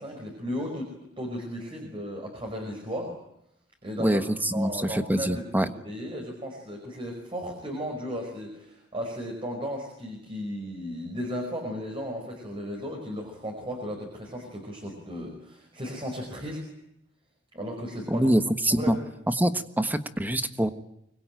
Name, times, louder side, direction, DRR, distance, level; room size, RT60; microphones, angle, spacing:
voice 1, 0.0-3.2 3.8-16.6 17.5-18.3 18.7-18.9, equal, 30° right, 2 dB, 5.2 m, -35 dB
voice 2, 4.0-5.7 18.1-19.0 19.3-20.7, right 1 dB, 10° right, 10 dB, 1.4 m, -25 dB
25.0 x 22.0 x 9.1 m, 0.82 s
head